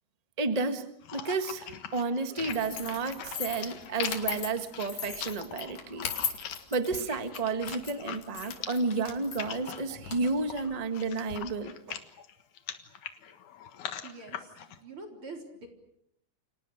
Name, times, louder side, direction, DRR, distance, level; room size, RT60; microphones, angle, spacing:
voice 1, 0.4-6.1 6.7-12.0, right 3 dB, 85° right, 8 dB, 0.3 m, -31 dB
sound 1, 1.0-14.8, left 9 dB, 70° left, 2.9 m, -42 dB
sound 2, 2.5-11.4, left 8 dB, 90° left, 4.2 m, -39 dB
voice 2, 14.0-15.7, right 3 dB, 40° right, 3 dB, 4.6 m, -45 dB
29.5 x 26.0 x 6.5 m, 0.75 s
omnidirectional pair, 3.7 m